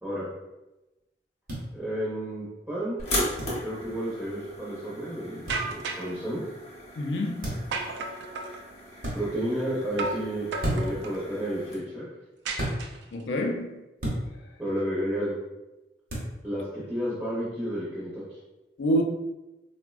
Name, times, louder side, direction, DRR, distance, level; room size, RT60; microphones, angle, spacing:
sound 1, 1.5-1.6 3.4-3.6 5.5-5.6 7.4-7.7 9.0-9.2 10.6-11.0 12.6-12.8 14.0-14.2 16.1-16.3, right 1 dB, 50° right, 0.8 m, -30 dB
voice 1, 1.7-3.0 3.6-6.4 9.1-12.1 14.6-15.4 16.4-18.2, equal, 10° right, 0.6 m, -31 dB
sound 2, 3.0-11.7, left 1 dB, 35° left, 0.7 m, -37 dB
sound 3, 5.5-6.2 7.7-8.6 10.0-10.3 10.5-11.2 12.5-13.2, right 3 dB, 80° right, 0.3 m, -33 dB
voice 2, 7.0-7.5 13.1-13.8 18.8-19.0, equal, 90° left, 0.4 m, -27 dB
3.5 x 2.1 x 2.3 m
head